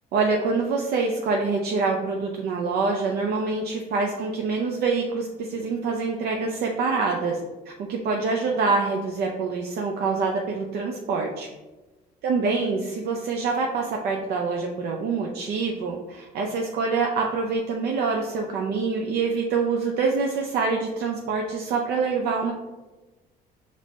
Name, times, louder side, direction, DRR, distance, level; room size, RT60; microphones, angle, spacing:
voice 1, 0.1-7.4 7.7-11.5 12.2-22.5, right 4 dB, 70° right, 1 dB, 0.5 m, -25 dB
5.1 x 2.6 x 3.1 m, 1.1 s
cardioid pair, 110°, 17 cm